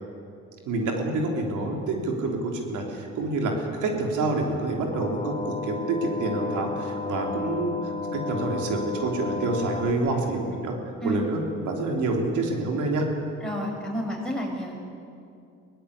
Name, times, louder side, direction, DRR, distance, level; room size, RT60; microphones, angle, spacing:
voice 1, 0.7-10.8 11.0-13.1, right 2 dB, 90° right, 1 dB, 3.7 m, -27 dB
sound 1, 4.9-9.9, left 4 dB, 25° left, 1.5 m, -32 dB
voice 2, 13.4-14.8, equal, ahead, -2 dB, 6.7 m, -30 dB
22.5 x 17.5 x 8.5 m, 2.5 s
cardioid pair, 90°, 30 cm